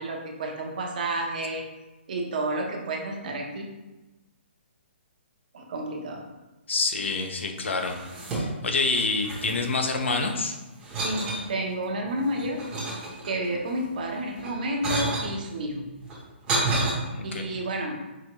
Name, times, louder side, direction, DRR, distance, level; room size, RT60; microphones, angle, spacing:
voice 1, 0.0-1.6 2.1-3.7 5.5-6.2 11.0-12.6 13.2-15.9 17.2-18.0, right 1 dB, 45° right, 1 dB, 0.8 m, -30 dB
voice 2, 6.7-7.9 8.3-10.6 17.1-17.4, left 3 dB, 80° left, 4 dB, 0.8 m, -27 dB
sound 1, 7.7-8.7 8.9-10.3 10.8-11.5 12.0-13.6 14.3-15.3 16.0-16.9, right 2 dB, 10° right, 0.8 m, -30 dB
4.9 x 3.5 x 3.0 m, 1.1 s
hypercardioid pair, 175°, 6 cm